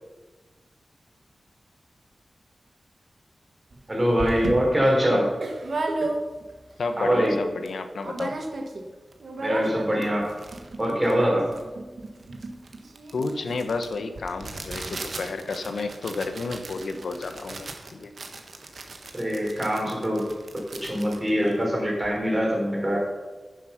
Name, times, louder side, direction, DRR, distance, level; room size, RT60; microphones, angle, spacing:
sound 1, 3.7-3.8 4.2-6.6 7.0-7.1 7.3-7.7 8.0-8.9 9.1-22.2, right 2 dB, 65° right, 1.2 m, -35 dB
voice 1, 3.9-5.2 7.0-7.3 9.4-10.3 10.8-11.5 19.1-20.2 20.8-23.0, equal, 20° right, -2 dB, 3.5 m, -23 dB
voice 2, 6.8-8.4 13.1-18.1, left 3 dB, 80° left, 8 dB, 0.7 m, -31 dB
9.9 x 7.5 x 5.6 m, 1.3 s
wide cardioid pair, 130°, 0 cm